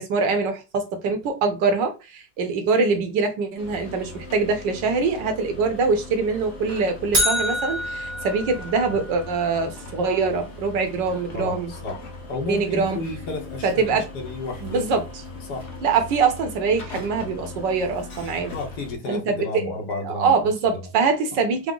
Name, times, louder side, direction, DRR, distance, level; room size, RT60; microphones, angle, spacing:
voice 1, 0.0-11.7 12.5-13.0 13.6-14.1 14.6-15.0 15.8-18.5 19.1-19.7 20.0-21.7, right 4 dB, 75° right, 1.5 m, -23 dB
sound 1, 3.6-19.0, left 2 dB, 45° left, 1.1 m, -39 dB
sound 2, 7.1-9.3, equal, 35° right, 0.9 m, -26 dB
voice 2, 11.3-12.0 12.3-14.9 15.5-15.7 18.5-20.9, left 3 dB, 65° left, 1.6 m, -32 dB
4.8 x 2.1 x 3.8 m
omnidirectional pair, 2.0 m